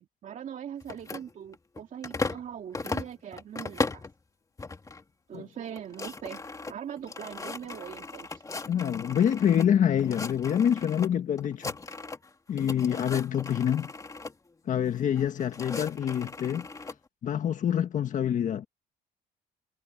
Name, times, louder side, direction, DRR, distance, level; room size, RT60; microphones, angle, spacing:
voice 1, 0.0-4.1 5.3-8.4, right 9 dB, 50° right, 2.3 m, -41 dB
sound 1, 0.8-2.5 2.7-4.1 4.6-5.0 5.3-5.4 5.7-9.7 10.0-11.1 11.4-12.3 12.6-14.3 15.1-17.0, left 3 dB, 20° left, 2.5 m, -37 dB
voice 2, 8.7-11.7 12.5-13.9 14.7-16.7 17.2-18.7, left 9 dB, 50° left, 1.6 m, -26 dB
cardioid pair, 110°, 17 cm